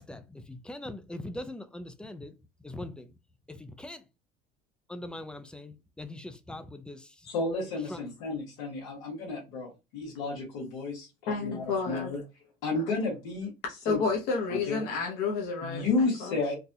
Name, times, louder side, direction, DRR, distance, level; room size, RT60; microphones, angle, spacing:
voice 1, 0.0-2.3 2.6-3.2 3.5-4.0 4.9-7.3 7.8-8.1, left 1 dB, 5° left, 0.4 m, -42 dB
voice 2, 7.3-12.2 12.6-13.5 13.9-14.0 14.5-14.8 15.6-16.5, left 3 dB, 90° left, 1.6 m, -32 dB
voice 3, 11.3-12.1 13.8-15.8 16.2-16.4, left 4 dB, 65° left, 1.0 m, -30 dB
3.9 x 2.4 x 2.7 m
cardioid pair, 115°, 17 cm